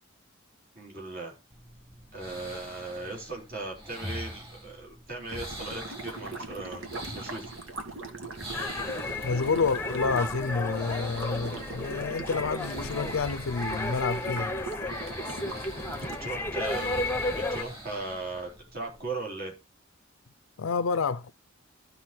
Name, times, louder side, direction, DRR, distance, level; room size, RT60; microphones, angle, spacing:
voice 1, 0.7-1.4 2.1-7.4 15.9-19.5, right 2 dB, 45° right, 4.0 m, -38 dB
sound 1, 1.5-19.0, right 1 dB, 30° right, 6.9 m, -45 dB
sound 2, 5.3-16.2, right 2 dB, 75° right, 1.6 m, -41 dB
sound 3, 8.5-17.6, left 2 dB, 10° left, 0.8 m, -33 dB
voice 2, 9.2-14.6 20.6-21.3, left 4 dB, 90° left, 0.5 m, -29 dB
12.5 x 5.3 x 4.5 m
head